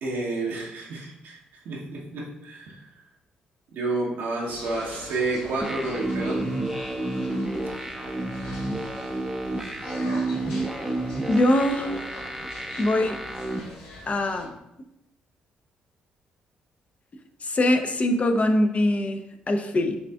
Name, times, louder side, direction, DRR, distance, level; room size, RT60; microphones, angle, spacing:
voice 1, 0.0-1.4 1.6-2.8 3.7-6.5, right 2 dB, 70° right, -3 dB, 0.9 m, -30 dB
sound 1, 4.4-14.5, left 2 dB, 80° left, 1.1 m, -42 dB
sound 2, 5.6-13.6, right 2 dB, 10° right, 0.6 m, -30 dB
voice 2, 11.3-12.0 12.8-13.2 14.1-14.5 17.4-20.0, left 1 dB, 40° left, 6 dB, 0.6 m, -23 dB
6.9 x 2.5 x 2.3 m, 0.86 s
hypercardioid pair, 50°, 4 cm